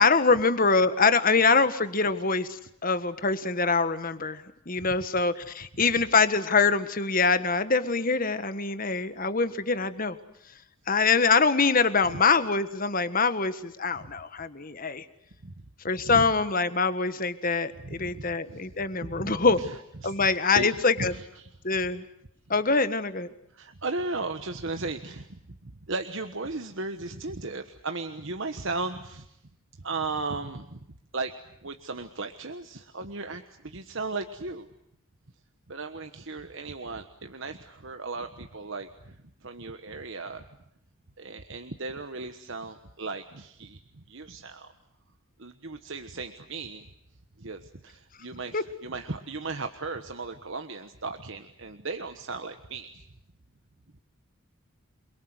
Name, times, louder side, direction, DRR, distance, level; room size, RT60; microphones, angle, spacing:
voice 1, 0.0-2.5 2.8-10.2 10.9-15.0 15.8-19.6 20.0-21.1 21.6-22.0 22.5-23.3 48.5-48.6, left 4 dB, 40° left, 11 dB, 1.5 m, -24 dB
voice 2, 17.8-20.7 21.0-21.5 23.5-29.4 29.7-30.8 31.1-34.7 35.7-40.4 41.2-44.7 45.4-46.9 47.4-53.1, right 3 dB, 60° right, 7 dB, 1.3 m, -36 dB
28.5 x 23.0 x 8.0 m, 0.75 s
head